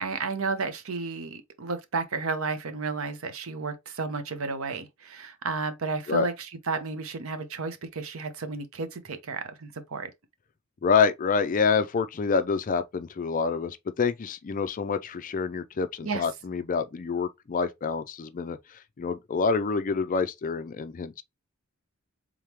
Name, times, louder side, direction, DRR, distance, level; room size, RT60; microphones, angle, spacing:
voice 1, 0.0-10.1 16.0-16.3, right 4 dB, 70° right, 0.8 m, -32 dB
voice 2, 10.8-21.2, left 5 dB, 40° left, 0.4 m, -27 dB
3.7 x 3.5 x 2.9 m
head